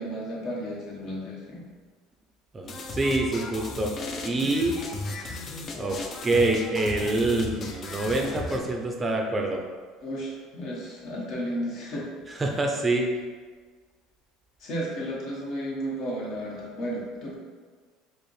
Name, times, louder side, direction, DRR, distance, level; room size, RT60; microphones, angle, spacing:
voice 1, 0.0-1.7 10.0-12.1 14.6-17.4, equal, 55° left, -4 dB, 1.1 m, -33 dB
voice 2, 2.5-3.9 4.2-4.8 5.8-6.0 6.2-9.6 12.3-13.1, right 2 dB, 20° right, 2 dB, 0.4 m, -26 dB
sound 1, 2.6-8.6, left 3 dB, 40° left, 0.4 m, -36 dB
4.7 x 2.0 x 3.1 m, 1.5 s
supercardioid pair, 100°, 0 cm